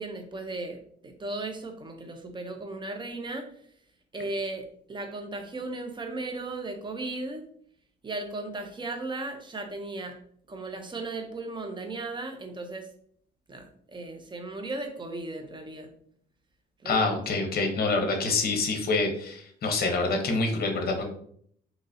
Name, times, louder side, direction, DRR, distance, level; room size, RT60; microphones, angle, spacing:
voice 1, 0.0-3.4 4.1-7.4 8.0-10.2 10.5-12.9 13.5-15.9 16.8-17.2, right 2 dB, 25° right, 5 dB, 0.7 m, -36 dB
voice 2, 16.8-21.0, left 3 dB, 50° left, 4 dB, 0.9 m, -26 dB
3.7 x 2.9 x 2.7 m, 0.63 s
cardioid pair, 90°, 20 cm